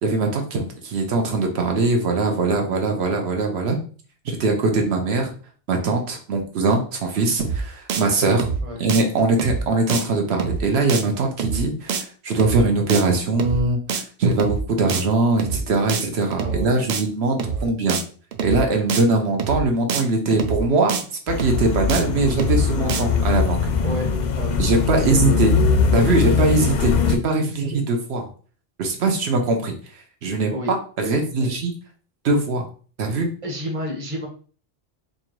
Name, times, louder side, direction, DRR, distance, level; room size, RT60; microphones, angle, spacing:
voice 1, 0.0-3.8 4.2-5.3 5.7-8.5 8.8-18.0 18.4-21.0 21.3-23.7 24.6-25.5 25.9-28.3 28.8-29.7 30.2-30.5 31.0-31.7 32.2-32.7 33.0-33.3, right 3 dB, 80° right, 3 dB, 1.0 m, -21 dB
sound 1, 7.4-7.6 7.9-8.0 8.3-8.6 8.9-9.0 9.4-9.6 9.9-10.0 10.3-10.6 10.9-11.0 11.4-11.6 11.9-12.0 12.3-12.6 12.9-13.0 13.4-13.6 13.9-14.0 14.3-14.6 14.9-15.0 15.4-15.6 15.9-16.0 16.3-16.6 16.9-17.0 17.4-17.6 17.9-18.0 18.3-18.6 18.9-19.0 19.4-19.6 19.9-20.0 20.3-20.6 20.9-21.0 21.4-21.6 21.9-22.0 22.3-22.6 22.9-23.0, right 6 dB, 55° right, 0.5 m, -25 dB
voice 2, 16.4-16.9 17.4-17.7 23.8-24.6 24.9-25.5 30.5-30.7 31.0-31.5 33.4-34.3, equal, 35° right, 0 dB, 1.1 m, -32 dB
sound 2, 21.3-27.2, left 5 dB, 55° left, 0.5 m, -21 dB
4.4 x 2.7 x 3.0 m, 0.40 s
omnidirectional pair, 1.1 m